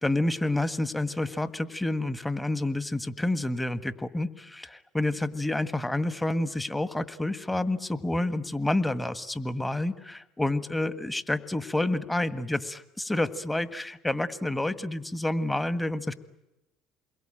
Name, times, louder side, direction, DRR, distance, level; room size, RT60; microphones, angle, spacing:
voice 1, 0.0-16.1, left 1 dB, 10° left, 12 dB, 1.6 m, -29 dB
28.5 x 22.5 x 9.0 m, 0.95 s
hypercardioid pair, 70°, 0 cm